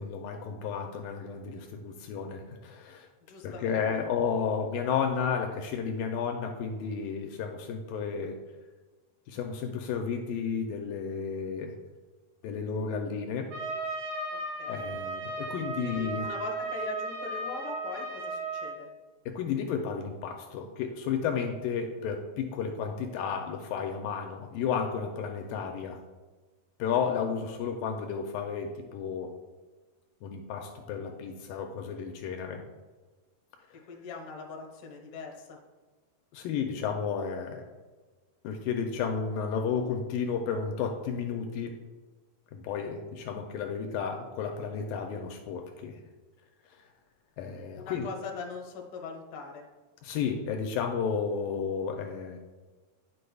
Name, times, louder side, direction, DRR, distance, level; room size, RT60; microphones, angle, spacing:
voice 1, 0.0-3.1 3.4-8.4 9.3-11.8 12.4-13.5 14.7-16.3 19.3-26.0 26.8-29.3 30.2-32.6 33.7-33.8 36.3-37.6 38.4-41.8 42.5-46.0 47.4-48.1 50.0-52.4, left 6 dB, 80° left, 3 dB, 2.2 m, -32 dB
voice 2, 3.3-3.8 14.3-14.9 15.8-18.9 33.9-35.6 47.7-49.6, left 4 dB, 60° left, 0 dB, 1.4 m, -41 dB
Trumpet, 13.5-18.8, right 2 dB, 90° right, 3.3 m, -35 dB
10.5 x 6.5 x 2.3 m, 1.3 s
omnidirectional pair, 4.3 m